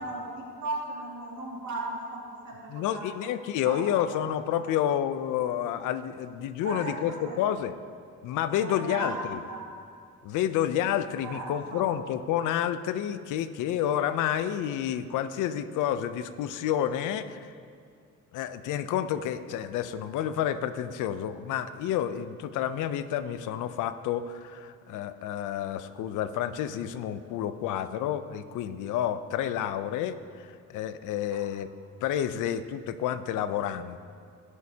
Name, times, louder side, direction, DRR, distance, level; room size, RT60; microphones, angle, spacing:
voice 1, 0.0-3.3 3.6-4.2 4.6-4.7 6.6-7.4 8.6-9.6 11.2-11.8 31.3-31.4, right 2 dB, 70° right, -4 dB, 2.6 m, -37 dB
voice 2, 2.7-7.7 8.2-9.4 10.2-17.5 18.3-31.7 32.0-34.0, left 10 dB, 90° left, 12 dB, 0.6 m, -29 dB
17.5 x 6.4 x 2.8 m, 2.2 s
cardioid pair, 90°, 30 cm